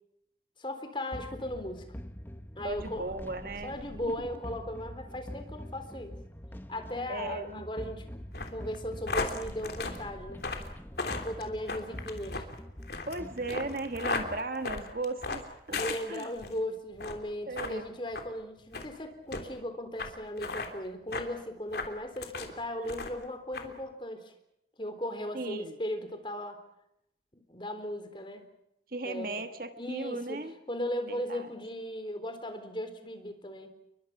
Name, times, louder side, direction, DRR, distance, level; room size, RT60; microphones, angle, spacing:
voice 1, 0.6-1.8 2.6-3.1 3.6-6.2 6.7-8.1 8.5-10.4 11.1-12.4 15.7-24.3 24.8-26.6 27.5-28.5 29.0-29.4 29.8-30.4 30.7-33.7, left 1 dB, 30° left, 7 dB, 3.7 m, -37 dB
sound 1, 1.1-14.4, equal, 10° left, 1.1 m, -45 dB
voice 2, 2.6-3.8 7.1-7.7 13.1-16.3 17.5-17.8 25.3-25.8 28.9-30.5 31.1-31.5, right 3 dB, 50° right, 8 dB, 1.5 m, -37 dB
sound 2, 8.3-16.5 16.9-17.2 17.5-17.7 18.1-18.3 18.7-18.9 19.3-19.4 20.0-20.1 20.4-20.7 21.1-21.3 21.7-22.5 22.9-23.2 23.5-23.7, left 3 dB, 65° left, 3.3 m, -36 dB
30.0 x 23.0 x 6.0 m, 0.78 s
head